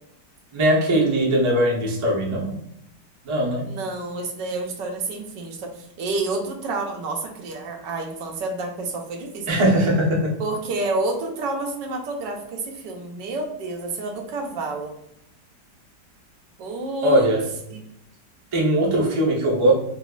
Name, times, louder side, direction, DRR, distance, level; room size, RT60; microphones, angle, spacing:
voice 1, 0.5-2.6 3.2-3.7 9.5-10.4 17.0-17.5 18.5-19.7, right 1 dB, 35° right, -4 dB, 0.4 m, -20 dB
voice 2, 3.7-9.6 10.4-14.9 16.6-17.3 17.7-17.8, right 3 dB, 90° right, 2 dB, 1.4 m, -29 dB
4.1 x 2.7 x 2.3 m, 0.78 s
omnidirectional pair, 1.9 m